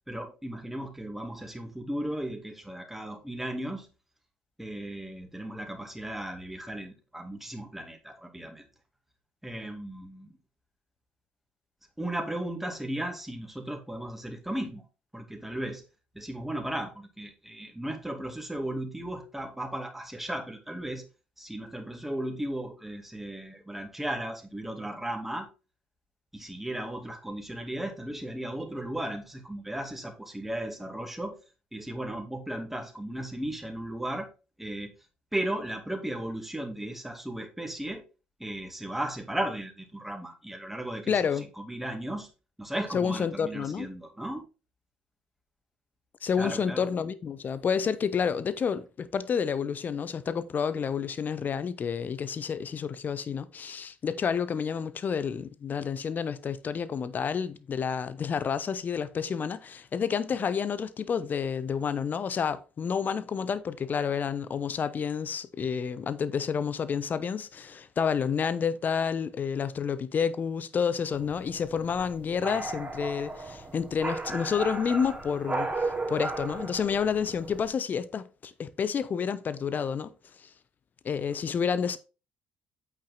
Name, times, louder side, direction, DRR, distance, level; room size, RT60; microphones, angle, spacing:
voice 1, 0.0-3.9 4.6-8.7 9.4-10.3 12.0-14.8 15.1-15.8 16.1-21.1 21.4-25.5 26.3-31.4 31.7-34.3 34.6-34.9 35.3-38.0 38.4-41.3 41.6-42.3 42.6-44.4 46.4-46.9, right 1 dB, 5° right, 2.4 m, -35 dB
voice 2, 41.1-41.5 42.9-43.9 46.2-80.1 81.0-82.0, left 6 dB, 40° left, 0.8 m, -29 dB
sound 1, 71.1-77.7, right 3 dB, 25° right, 2.8 m, -35 dB
8.5 x 6.1 x 3.9 m
figure-of-eight pair, 50°, 5 cm